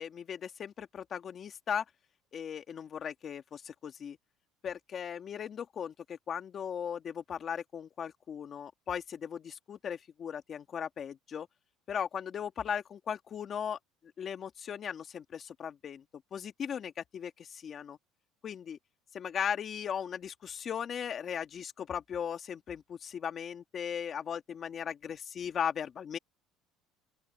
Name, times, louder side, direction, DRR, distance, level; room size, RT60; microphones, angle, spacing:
voice 1, 0.0-1.8 2.3-4.2 4.6-11.5 11.9-13.8 14.2-16.0 16.3-18.0 18.4-18.8 19.1-26.2, left 8 dB, 35° left, 2.2 m, -37 dB
open air
cardioid pair, 140°, 0 cm